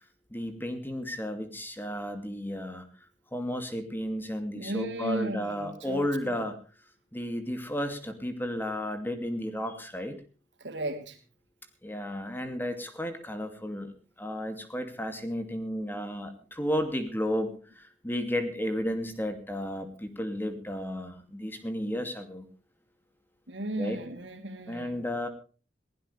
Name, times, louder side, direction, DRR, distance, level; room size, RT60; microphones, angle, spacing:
voice 1, 0.3-2.9 3.3-6.6 7.1-10.1 11.8-13.9 14.2-22.4 23.8-24.0 24.7-25.3, equal, 10° left, 7 dB, 2.5 m, -33 dB
voice 2, 4.5-6.5 10.6-11.2 23.5-24.9, right 1 dB, 80° right, 5 dB, 3.3 m, -35 dB
21.5 x 16.5 x 3.4 m, 0.37 s
head